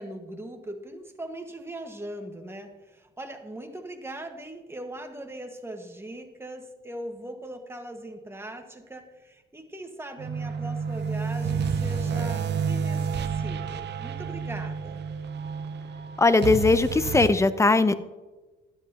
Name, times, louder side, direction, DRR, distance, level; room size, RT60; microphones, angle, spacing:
voice 1, 0.0-15.0, right 1 dB, 10° right, 4 dB, 1.6 m, -40 dB
sound 1, 10.2-17.3, right 6 dB, 60° right, 0.9 m, -30 dB
voice 2, 16.2-17.9, left 3 dB, 15° left, 13 dB, 0.7 m, -20 dB
12.5 x 11.5 x 3.0 m, 1.2 s
cardioid pair, 90°, 20 cm